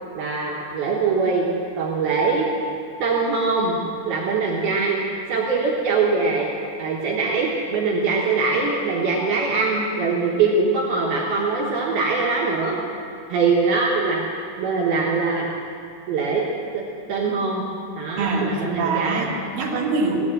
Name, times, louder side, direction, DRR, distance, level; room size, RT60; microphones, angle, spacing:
voice 1, 0.1-1.5 1.8-2.5 3.0-3.8 4.1-5.0 5.3-6.5 6.8-12.8 13.3-14.2 14.6-15.5 16.1-16.4 16.7-16.8 17.1-17.6 18.0-19.3, right 4 dB, 75° right, -3 dB, 3.1 m, -22 dB
voice 2, 18.1-20.2, right 3 dB, 60° right, -2 dB, 3.3 m, -24 dB
17.0 x 9.9 x 7.6 m, 2.5 s
omnidirectional pair, 4.5 m